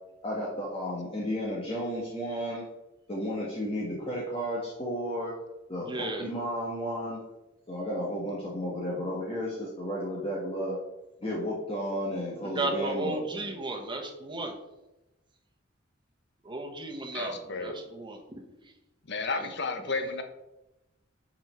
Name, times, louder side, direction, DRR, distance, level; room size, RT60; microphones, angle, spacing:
voice 1, 0.2-2.6 3.1-5.3 5.7-7.2 7.7-10.8 11.2-13.5, equal, 30° left, -5 dB, 1.5 m, -33 dB
voice 2, 5.8-6.3 12.4-14.5 16.4-18.4 19.4-19.5, right 2 dB, 25° right, 2 dB, 1.4 m, -34 dB
voice 3, 17.1-17.8 19.1-20.2, left 3 dB, 60° left, 7 dB, 1.1 m, -32 dB
6.3 x 5.4 x 6.7 m, 0.98 s
head